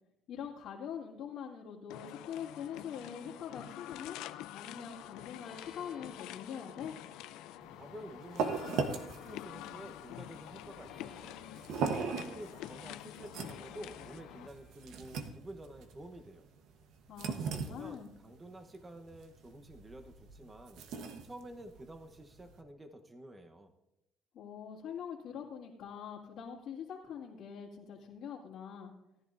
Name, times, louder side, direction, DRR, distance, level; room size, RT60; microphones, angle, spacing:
voice 1, 0.3-4.2 4.5-6.9 17.1-18.1 24.3-28.9, left 8 dB, 70° left, -7 dB, 2.1 m, -44 dB
sound 1, 1.9-14.5, left 13 dB, 85° left, 0.5 m, -47 dB
sound 2, 4.9-15.4, left 7 dB, 50° left, 1.4 m, -60 dB
sound 3, 7.6-22.6, right 5 dB, 75° right, 1.1 m, -40 dB
voice 2, 7.8-11.4 12.1-16.5 17.5-20.8 21.2-23.7, right 1 dB, 20° right, 5 dB, 1.0 m, -50 dB
18.5 x 11.0 x 2.6 m, 0.88 s
cardioid pair, 110°, 0 cm